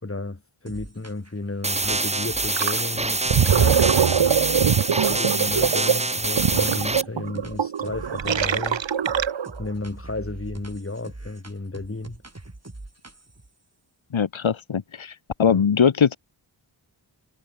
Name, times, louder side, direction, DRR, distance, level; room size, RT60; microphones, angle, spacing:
voice 1, 0.0-3.8 5.1-8.8 9.6-12.2 15.5-15.6, left 2 dB, 30° left, 2.5 m, -33 dB
sound 1, 0.7-1.4 1.7-7.0 7.3-8.8 9.0-13.5, right 2 dB, 35° right, 6.3 m, -42 dB
sound 2, 1.6-7.0, right 2 dB, 15° right, 0.6 m, -25 dB
Gurgling, 2.6-2.8 3.1-9.6, right 8 dB, 75° right, 0.9 m, -22 dB
voice 2, 14.1-16.2, left 7 dB, 85° left, 1.2 m, -21 dB
wide cardioid pair, 65°, 46 cm